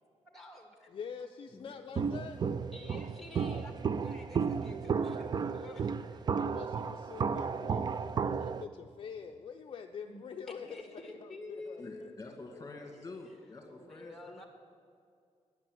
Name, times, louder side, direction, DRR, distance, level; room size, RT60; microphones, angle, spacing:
voice 1, 0.2-0.9 2.7-6.4 10.1-10.2 10.7-12.1 12.8-13.0 13.2-13.3 13.8-14.5, left 2 dB, ahead, 3 dB, 1.7 m, -49 dB
voice 2, 0.9-2.4 6.4-10.8 11.2-12.1, left 6 dB, 45° left, 4 dB, 0.5 m, -45 dB
Walk footsteps, 1.9-8.6, right 6 dB, 35° right, 0.3 m, -33 dB
voice 3, 2.0-2.5 11.8-14.4, left 3 dB, 25° left, 3 dB, 1.9 m, -48 dB
11.0 x 9.9 x 7.8 m, 2.3 s
wide cardioid pair, 155°, 12 cm